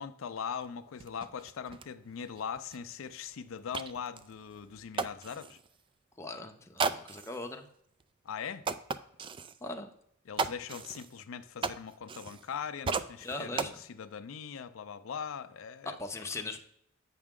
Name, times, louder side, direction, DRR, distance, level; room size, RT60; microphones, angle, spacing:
voice 1, 0.0-5.6 8.2-8.6 10.3-16.0, left 7 dB, 75° left, 0.4 m, -41 dB
sound 1, 0.6-0.7 1.0-5.7 6.8-7.5 8.0-8.1 8.6-9.6 10.4-12.6 12.8-13.7, right 4 dB, 25° right, 0.3 m, -36 dB
voice 2, 6.2-7.6 9.6-9.9 13.2-13.8 15.9-16.6, left 2 dB, 15° left, 0.6 m, -39 dB
8.2 x 5.9 x 3.6 m
head